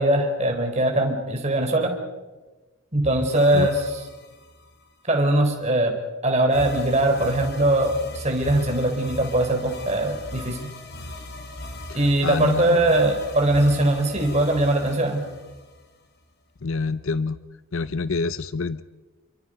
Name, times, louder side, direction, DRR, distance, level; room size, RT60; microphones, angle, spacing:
voice 1, 0.0-1.9 2.9-4.0 5.1-5.9 6.2-10.7 11.9-15.3, right 1 dB, 30° right, 3 dB, 4.4 m, -21 dB
sound 1, 3.0-4.9 6.5-16.2, left 1 dB, 50° left, 3.5 m, -38 dB
voice 2, 12.2-13.0 16.6-17.4 17.7-18.8, left 4 dB, 65° left, 13 dB, 0.7 m, -27 dB
29.5 x 25.0 x 5.2 m, 1.2 s
head